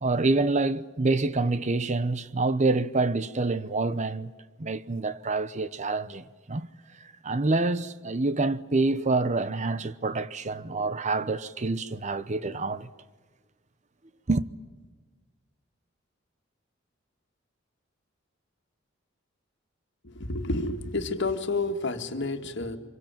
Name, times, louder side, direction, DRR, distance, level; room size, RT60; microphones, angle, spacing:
voice 1, 0.0-4.3 4.6-6.7 7.0-12.9 14.3-14.5, right 3 dB, 35° right, 0.8 m, -27 dB
voice 2, 20.0-22.8, left 2 dB, 60° left, 1.9 m, -30 dB
25.5 x 23.0 x 9.0 m
head